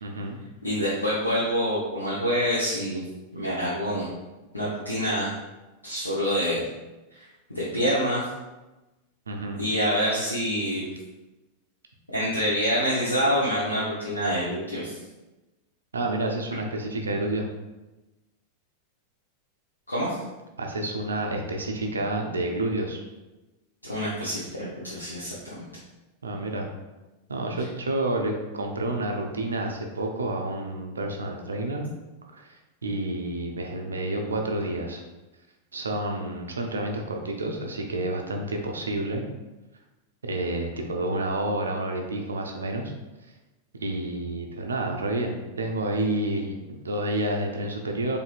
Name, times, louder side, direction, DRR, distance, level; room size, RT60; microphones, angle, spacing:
voice 1, 0.0-0.4 9.3-9.6 15.9-17.5 20.6-23.0 26.2-26.7 27.3-31.9 32.3-35.0 35.7-39.2 40.2-42.9 43.8-48.2, right 1 dB, 75° right, 2 dB, 0.4 m, -29 dB
voice 2, 0.6-3.0 3.3-4.1 4.5-5.3 5.8-6.6 7.1-7.3 7.5-8.2 9.6-10.9 12.1-15.0 19.9-20.2 23.8-25.7, equal, 85° left, -8 dB, 0.7 m, -26 dB
4.2 x 2.6 x 2.4 m, 1.1 s
figure-of-eight pair, 90°, 0 cm